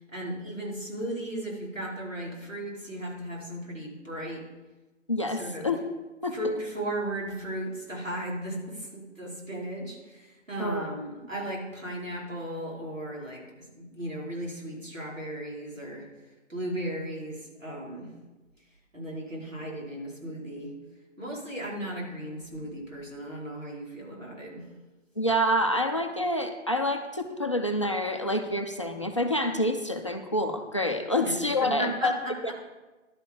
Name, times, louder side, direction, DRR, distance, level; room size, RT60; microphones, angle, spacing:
voice 1, 0.0-4.4 5.3-5.7 6.3-13.4 13.7-16.1 16.5-18.1 18.9-20.7 21.2-24.6 31.2-31.3 31.6-32.5, right 1 dB, 90° right, -3 dB, 4.9 m, -36 dB
voice 2, 5.1-5.8 6.2-6.4 10.6-10.8 25.2-32.1 32.4-32.5, left 1 dB, 25° left, 4 dB, 0.6 m, -27 dB
11.5 x 9.7 x 5.3 m, 1.2 s
figure-of-eight pair, 150°, 37 cm